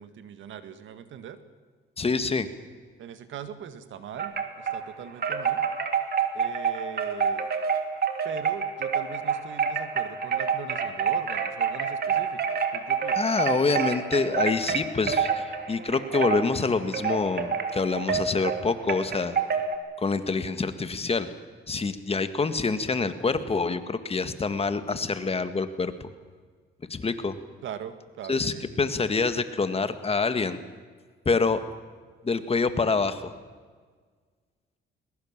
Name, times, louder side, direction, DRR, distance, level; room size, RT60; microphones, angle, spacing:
voice 1, 0.0-1.4 3.0-5.6 6.3-7.5 8.2-13.3 27.6-28.7, right 8 dB, 75° right, 11 dB, 1.8 m, -41 dB
voice 2, 2.0-2.5 13.2-19.4 20.0-21.3 21.7-26.1 26.9-27.4 28.3-30.6 31.3-31.6 32.2-33.3, left 4 dB, 30° left, 10 dB, 1.8 m, -26 dB
Wind chime, 4.2-4.8 5.2-19.8, right 6 dB, 50° right, 2.8 m, -28 dB
21.5 x 21.5 x 7.5 m, 1.5 s
cardioid pair, 90°, 20 cm